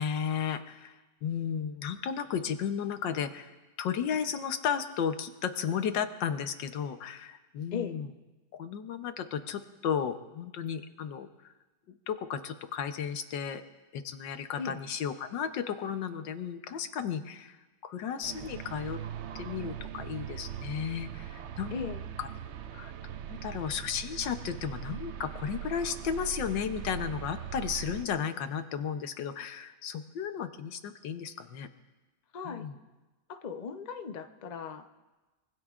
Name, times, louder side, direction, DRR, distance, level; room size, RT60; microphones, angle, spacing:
voice 1, 0.0-3.5 3.8-8.1 8.6-11.5 11.9-13.6 13.9-17.6 17.8-19.0 19.3-21.7 22.2-22.3 22.7-31.7 32.4-32.7, left 7 dB, 85° left, 8 dB, 1.6 m, -34 dB
sound 1, 18.2-28.1, right 9 dB, 90° right, 0.6 m, -41 dB
voice 2, 21.7-22.0 32.3-32.7 33.3-34.9, left 6 dB, 40° left, 6 dB, 0.5 m, -37 dB
25.0 x 23.5 x 2.5 m, 1.2 s
omnidirectional pair, 1.9 m